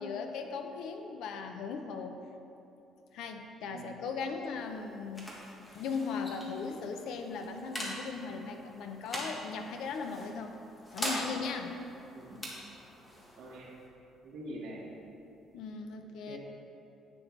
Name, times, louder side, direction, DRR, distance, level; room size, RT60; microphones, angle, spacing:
voice 1, 0.0-2.2 3.1-5.3 5.7-10.5 10.9-11.8 15.5-16.4, left 5 dB, 75° left, 5 dB, 0.7 m, -38 dB
voice 2, 3.7-4.1 12.1-12.4 13.4-13.7 14.2-14.8 16.3-16.4, right 1 dB, 65° right, -6 dB, 2.0 m, -44 dB
sound 1, 4.4-15.7, equal, 10° left, 1.4 m, -43 dB
10.5 x 7.7 x 3.3 m, 2.9 s
cardioid pair, 170°, 0 cm